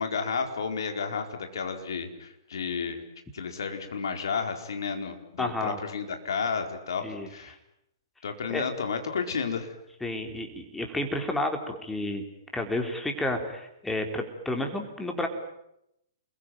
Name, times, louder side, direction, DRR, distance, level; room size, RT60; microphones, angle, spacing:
voice 1, 0.0-3.0 3.3-7.6 8.2-9.7, left 5 dB, 60° left, 6 dB, 4.5 m, -32 dB
voice 2, 5.4-5.8 7.0-7.3 8.5-8.7 10.0-12.2 12.5-15.3, left 1 dB, 5° left, 4 dB, 4.1 m, -31 dB
28.5 x 22.0 x 9.4 m, 0.81 s
figure-of-eight pair, 115°, 2 cm